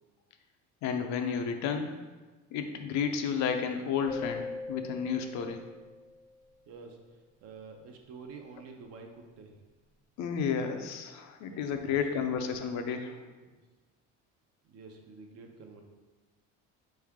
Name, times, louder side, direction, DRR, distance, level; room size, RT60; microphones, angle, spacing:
voice 1, 0.8-2.0 2.5-5.6 10.2-13.2, left 6 dB, 65° left, 6 dB, 0.6 m, -32 dB
sound 1, 4.1-6.3, left 3 dB, 15° left, 0.5 m, -41 dB
voice 2, 6.7-7.0 7.4-9.6 11.4-12.3 13.2-13.6 14.7-15.8, right 4 dB, 50° right, 3 dB, 0.7 m, -49 dB
4.5 x 3.2 x 3.5 m, 1.2 s
cardioid pair, 135°, 30 cm